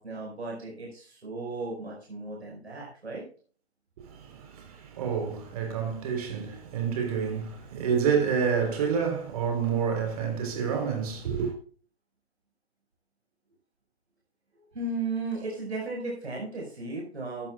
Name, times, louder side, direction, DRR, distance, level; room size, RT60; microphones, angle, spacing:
voice 1, 0.0-3.2 14.7-17.5, right 3 dB, 75° right, 4.8 m, -35 dB
voice 2, 4.0-11.5, right 6 dB, 35° right, 3.6 m, -28 dB
13.0 x 12.5 x 2.3 m
figure-of-eight pair, 145°, 33 cm